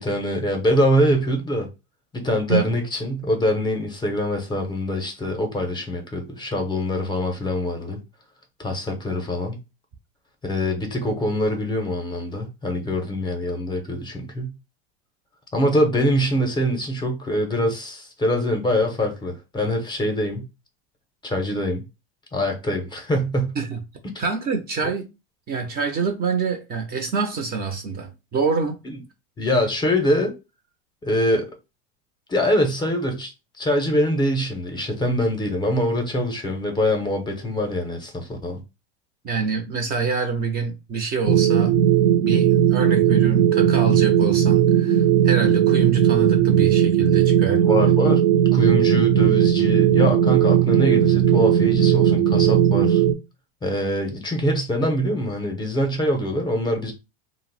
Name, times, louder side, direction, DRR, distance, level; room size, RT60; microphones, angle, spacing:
voice 1, 0.0-1.7 2.1-8.0 8.6-9.6 10.4-14.5 15.5-20.4 21.2-21.8 22.3-23.5 24.1-24.2 24.8-24.9 28.8-29.0 29.4-30.4 31.0-31.5 32.3-33.3 33.6-38.6 47.6-48.2 48.5-53.0 53.6-56.9, equal, 15° left, 0.6 m, -24 dB
voice 2, 24.2-25.1 25.5-28.8 39.2-41.7 42.2-47.7, right 5 dB, 30° right, 0.5 m, -26 dB
sound 1, 41.2-53.1, right 10 dB, 80° right, 0.6 m, -17 dB
2.5 x 2.0 x 3.8 m
supercardioid pair, 125°, 32 cm